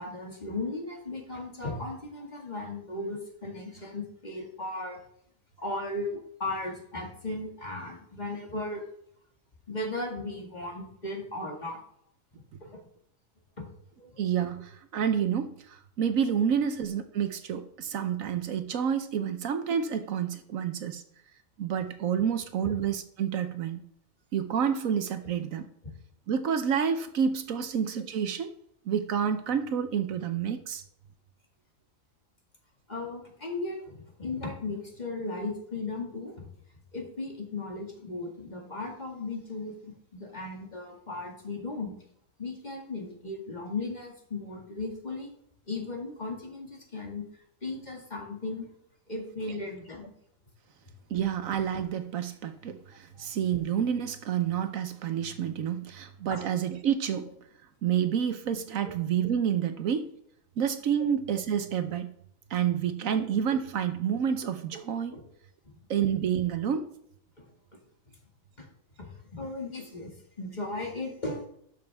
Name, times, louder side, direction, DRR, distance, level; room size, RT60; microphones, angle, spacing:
voice 1, 0.0-5.0 5.6-8.8 9.7-11.8 12.6-12.8 13.6-13.7 14.0-14.2 19.3-19.4 22.6-22.7 25.8-25.9 32.9-36.5 36.9-41.9 42.4-45.3 45.7-47.2 47.6-48.7 49.1-50.1 53.2-53.3 56.3-56.4 63.1-63.2 65.1-65.2 67.4-67.5 68.6-68.7 69.0-70.1 70.4-71.5, left 2 dB, 30° left, 0 dB, 2.2 m, -36 dB
voice 2, 14.2-21.0 21.6-23.8 24.3-25.7 26.3-28.5 28.9-30.8 51.1-57.3 57.8-60.1 60.6-62.1 62.5-65.2 65.9-66.9, right 8 dB, 75° right, 9 dB, 1.2 m, -29 dB
12.5 x 6.5 x 3.5 m, 0.69 s
omnidirectional pair, 1.4 m